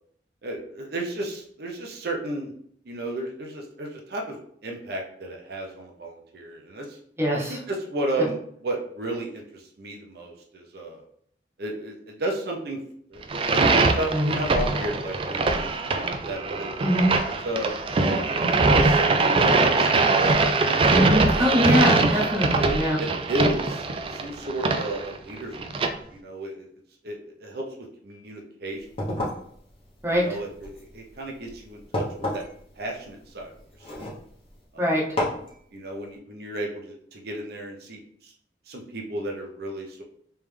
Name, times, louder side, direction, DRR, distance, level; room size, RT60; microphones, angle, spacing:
voice 1, 0.4-2.5 2.8-7.0 7.5-11.0 11.6-12.8 13.1-15.6 15.9-16.7 17.4-17.8 18.1-21.4 22.5-22.6 23.0-26.7 27.0-27.6 28.0-28.9 30.1-32.0 32.3-32.4 32.8-33.5 33.8-34.1 34.7-34.9 35.7-38.3 38.7-40.0, right 1 dB, 60° right, 0 dB, 0.7 m, -33 dB
voice 2, 7.2-7.6 14.1-14.4 16.8-17.1 20.9-23.0 30.0-30.3 34.8-35.0, equal, 15° right, -3 dB, 0.8 m, -23 dB
sound 1, 13.2-25.9, right 3 dB, 30° right, 0.3 m, -22 dB
sound 2, 28.7-34.6 35.2-35.5, left 1 dB, 35° left, 1.1 m, -33 dB
3.4 x 3.2 x 3.3 m, 0.65 s
head